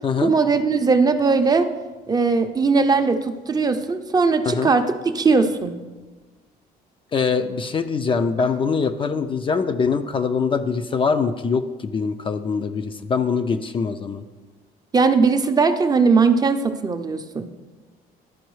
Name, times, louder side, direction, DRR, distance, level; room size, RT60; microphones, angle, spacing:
voice 1, 0.2-1.7 2.1-4.9 5.1-5.7 14.9-17.5, right 4 dB, 25° right, 7 dB, 0.5 m, -19 dB
voice 2, 7.1-14.2, left 5 dB, 30° left, 8 dB, 0.4 m, -23 dB
12.0 x 4.7 x 3.1 m, 1.3 s
cardioid pair, 110°, 17 cm